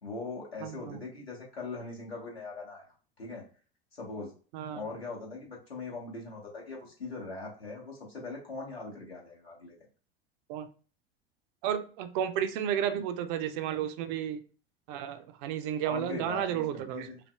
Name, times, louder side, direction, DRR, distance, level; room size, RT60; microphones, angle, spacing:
voice 1, 0.0-2.8 3.2-3.5 3.9-4.3 4.7-9.7 15.8-17.2, left 3 dB, 80° left, 1.4 m, -41 dB
voice 2, 0.6-1.0 4.5-4.8 10.5-10.7 11.6-14.4 14.9-17.1, right 9 dB, 50° right, 0.5 m, -32 dB
5.6 x 2.0 x 2.3 m
figure-of-eight pair, 75°, 30 cm